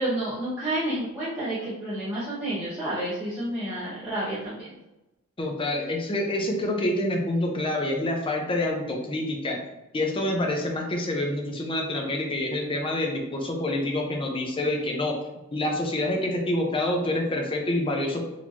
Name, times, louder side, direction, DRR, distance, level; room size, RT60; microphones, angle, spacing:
voice 1, 0.0-4.7, right 1 dB, 10° right, -12 dB, 1.0 m, -30 dB
voice 2, 5.4-9.6 9.9-15.2 15.5-18.2, left 1 dB, 25° left, 1 dB, 0.6 m, -27 dB
4.3 x 2.9 x 2.9 m, 0.95 s
head